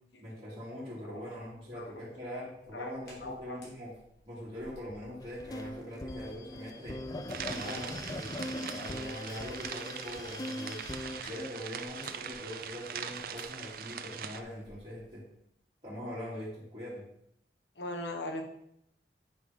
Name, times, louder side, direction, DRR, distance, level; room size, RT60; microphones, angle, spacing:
voice 1, 0.2-3.9 4.3-7.0 7.4-10.8 11.3-15.2 15.8-17.0, equal, 30° right, -9 dB, 2.7 m, -42 dB
Hands, 1.1-15.1, equal, 60° left, 3.7 m, -60 dB
voice 2, 3.2-3.6 17.7-18.4, left 2 dB, 80° left, 4 dB, 1.3 m, -39 dB
sound 1, 5.2-11.2, left 1 dB, 20° left, 0.6 m, -41 dB
sound 2, 7.3-14.4, right 7 dB, 55° right, 0.5 m, -42 dB
8.9 x 4.8 x 5.3 m, 0.75 s
head